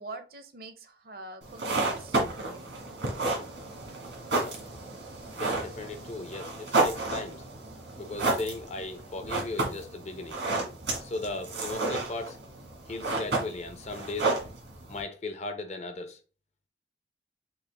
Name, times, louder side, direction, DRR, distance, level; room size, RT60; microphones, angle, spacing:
voice 1, 0.0-2.8, right 2 dB, 55° right, 0.6 m, -44 dB
sound 1, 1.4-15.0, right 2 dB, 85° right, 1.5 m, -31 dB
voice 2, 5.3-7.4 8.0-10.4 11.0-12.4 12.9-14.4 14.9-16.2, left 2 dB, 40° left, 0.5 m, -37 dB
5.5 x 2.4 x 3.3 m
head